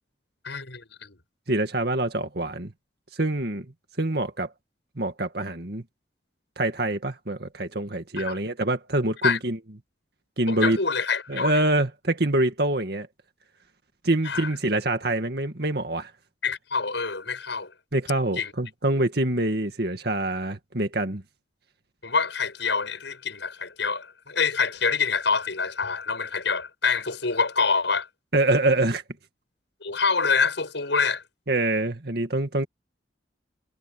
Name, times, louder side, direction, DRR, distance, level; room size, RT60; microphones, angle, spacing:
voice 1, 0.4-1.2 8.2-8.4 9.2-9.4 10.5-11.6 14.2-14.5 16.4-17.7 18.4-18.5 22.0-28.1 29.8-31.2, left 5 dB, 75° left, 6.2 m, -26 dB
voice 2, 1.5-2.7 3.2-3.7 4.0-4.5 5.0-5.8 6.6-9.6 10.4-10.8 11.3-13.1 14.0-16.1 17.9-21.2 28.3-29.0 31.5-32.7, right 2 dB, 55° right, 2.1 m, -25 dB
head